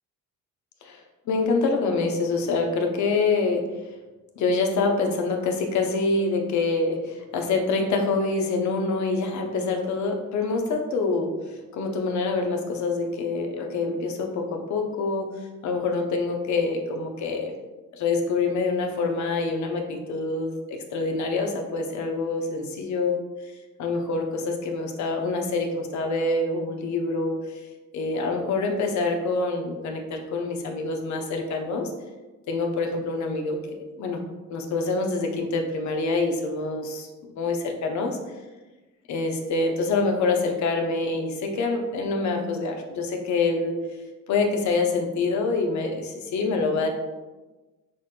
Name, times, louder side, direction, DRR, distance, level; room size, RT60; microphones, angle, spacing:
voice 1, 0.8-3.7 4.4-15.3 15.6-17.6 17.9-23.2 23.8-27.6 27.9-31.9 32.5-34.2 34.5-37.1 37.3-38.2 39.1-43.8 44.3-46.9, left 3 dB, 70° left, 3 dB, 0.7 m, -26 dB
6.0 x 2.2 x 2.4 m, 1.2 s
cardioid pair, 90°, 30 cm